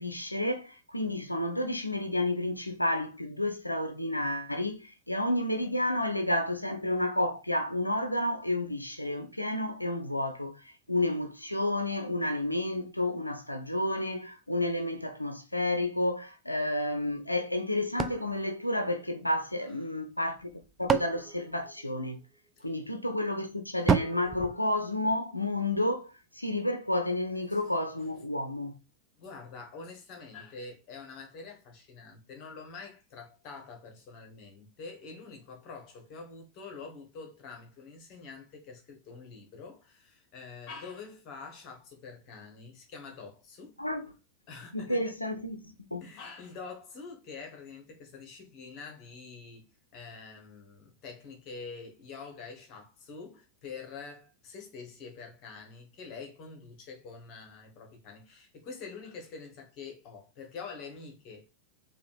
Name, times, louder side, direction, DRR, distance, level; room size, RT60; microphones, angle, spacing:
voice 1, 0.0-22.2 22.6-28.7 43.8-44.1 44.7-45.6 45.9-46.0, left 1 dB, 85° left, 0.5 m, -31 dB
sound 1, 18.0-19.5 20.4-22.4 23.9-25.5, right 6 dB, 20° right, 0.4 m, -32 dB
voice 2, 29.2-43.8 44.5-45.0 46.0-61.5, left 4 dB, 40° left, 1.2 m, -46 dB
4.7 x 2.4 x 3.3 m
figure-of-eight pair, 90°, 0 cm